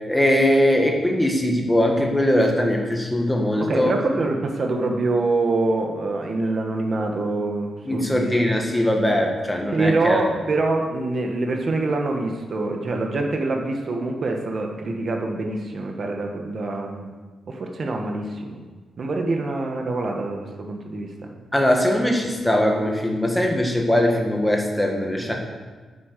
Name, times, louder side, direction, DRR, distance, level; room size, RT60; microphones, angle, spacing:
voice 1, 0.1-3.9 7.9-10.2 21.5-25.3, left 1 dB, 5° left, 1 dB, 1.6 m, -21 dB
voice 2, 3.6-8.4 9.7-17.1 17.5-18.6 19.0-21.3 25.2-25.3, right 2 dB, 40° right, 2 dB, 1.4 m, -25 dB
9.7 x 8.2 x 6.8 m, 1.4 s
wide cardioid pair, 165°, 0 cm